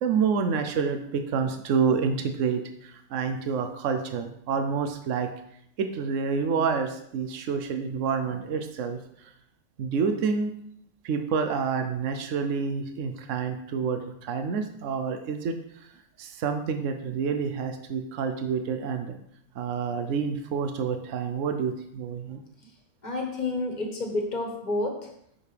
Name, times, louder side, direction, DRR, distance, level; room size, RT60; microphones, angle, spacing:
voice 1, 0.0-5.3 5.8-9.0 9.8-10.5 11.0-15.6 16.2-19.2 19.6-22.4, right 6 dB, 80° right, 7 dB, 1.0 m, -28 dB
voice 2, 23.0-25.1, left 2 dB, 40° left, 1 dB, 1.4 m, -29 dB
7.5 x 6.7 x 3.4 m, 0.75 s
omnidirectional pair, 1.3 m